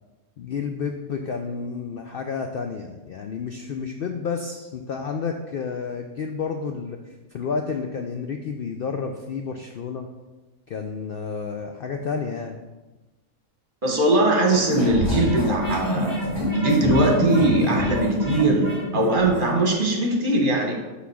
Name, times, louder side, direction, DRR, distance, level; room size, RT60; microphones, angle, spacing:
voice 1, 0.4-10.1 10.7-12.6, left 5 dB, 70° left, 4 dB, 0.5 m, -30 dB
voice 2, 13.8-16.1 16.5-20.7, right 2 dB, 40° right, 1 dB, 1.3 m, -21 dB
sound 1, 14.5-19.5, left 1 dB, 15° left, 2.1 m, -26 dB
5.7 x 4.0 x 6.2 m, 1.2 s
omnidirectional pair, 1.5 m